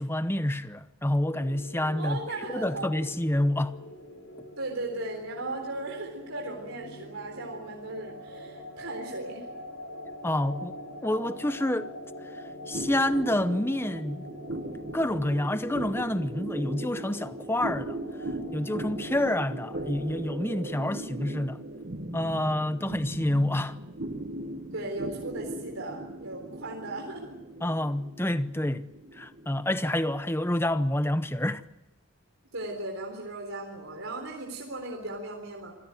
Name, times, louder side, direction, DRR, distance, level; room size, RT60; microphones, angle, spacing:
voice 1, 0.0-2.2 2.5-3.8 10.2-11.9 12.3-14.2 14.7-18.0 18.5-21.6 22.1-23.8 27.6-31.6, left 1 dB, 10° left, 0.8 m, -28 dB
sound 1, 1.3-20.1, left 1 dB, 70° left, 6.1 m, -44 dB
voice 2, 2.0-2.9 4.6-9.5 19.1-19.3 24.7-27.3 32.5-35.7, right 2 dB, 80° right, 3.9 m, -37 dB
sound 2, 12.7-31.5, right 1 dB, 50° right, 1.7 m, -38 dB
26.0 x 16.5 x 9.1 m
head